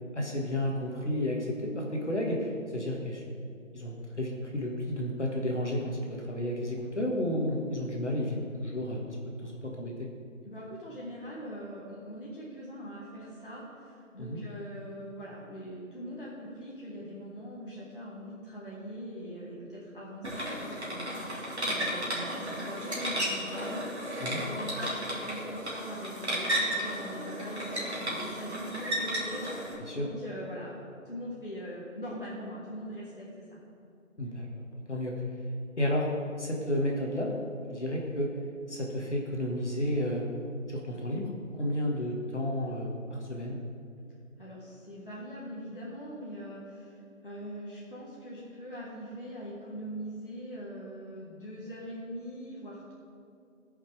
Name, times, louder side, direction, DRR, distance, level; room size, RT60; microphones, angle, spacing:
voice 1, 0.1-3.2 3.7-9.1 9.4-9.9 14.2-14.4 24.2-24.4 29.8-30.1 34.2-34.5 34.9-35.1 35.8-36.1 36.4-37.3 37.7-38.3 38.7-40.3 40.7-43.6, left 1 dB, 55° left, -1 dB, 1.6 m, -32 dB
voice 2, 10.4-30.8 31.0-33.6 44.4-52.9, equal, 40° left, -6 dB, 1.4 m, -42 dB
sound 1, 20.2-29.7, equal, 50° right, 2.2 m, -34 dB
17.0 x 5.7 x 3.4 m, 2.5 s
figure-of-eight pair, 175°, 41 cm